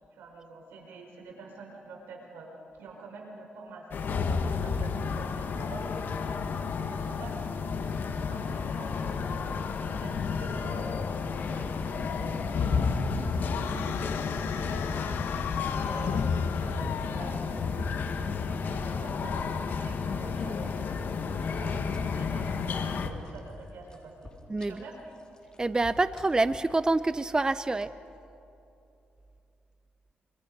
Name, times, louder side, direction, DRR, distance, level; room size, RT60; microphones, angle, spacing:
voice 1, 0.1-2.5 2.8-5.9 6.2-7.9 8.2-9.5 10.0-16.2 16.6-20.7 21.2-24.3 24.7-25.1, right 3 dB, 90° right, 0 dB, 5.0 m, -46 dB
sound 1, 3.9-23.1, left 5 dB, 65° left, 1.7 m, -31 dB
sound 2, 13.4-17.8, left 9 dB, 85° left, 0.9 m, -39 dB
sound 3, 20.1-28.2, left 2 dB, 25° left, 3.8 m, -51 dB
voice 2, 24.5-24.8 25.6-27.9, right 2 dB, 20° right, 13 dB, 0.6 m, -26 dB
27.0 x 25.5 x 5.4 m, 2.8 s
cardioid pair, 75°, 4 cm